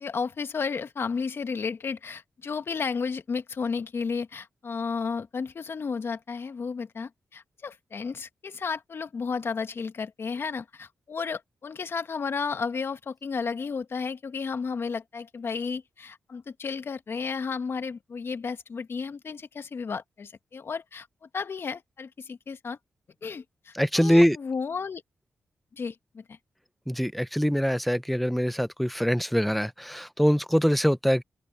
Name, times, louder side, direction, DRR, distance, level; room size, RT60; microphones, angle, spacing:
voice 1, 0.0-21.1 21.3-22.8 23.2-25.0 25.7-26.4, left 5 dB, 55° left, 1.5 m, -33 dB
voice 2, 23.7-24.4 26.9-31.2, equal, ahead, 0.8 m, -23 dB
open air
cardioid pair, 60°, 5 cm